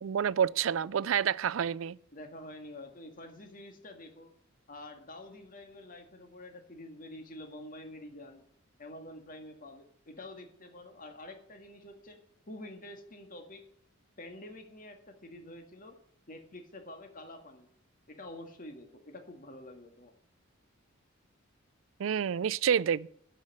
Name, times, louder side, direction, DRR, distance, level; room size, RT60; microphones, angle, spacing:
voice 1, 0.0-2.0 22.0-23.1, right 8 dB, 75° right, 0.4 m, -28 dB
voice 2, 2.1-4.3 4.7-8.4 8.8-12.2 12.5-13.7 14.2-16.0 16.3-17.7 18.1-20.1, left 1 dB, 45° left, 1.9 m, -47 dB
11.5 x 5.8 x 8.5 m
head